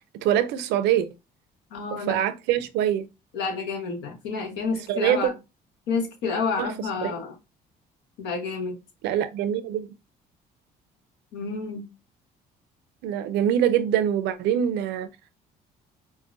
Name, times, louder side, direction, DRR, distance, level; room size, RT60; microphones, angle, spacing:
voice 1, 0.2-1.1 2.1-3.0 4.9-5.3 6.6-6.7 7.0-7.1 9.0-9.9 13.0-15.1, right 10 dB, 85° right, 0.5 m, -24 dB
voice 2, 1.7-2.2 3.3-5.4 5.9-7.3 8.2-8.8 11.3-11.9, left 4 dB, 90° left, 1.1 m, -29 dB
4.7 x 2.1 x 2.5 m
cardioid pair, 110°, 17 cm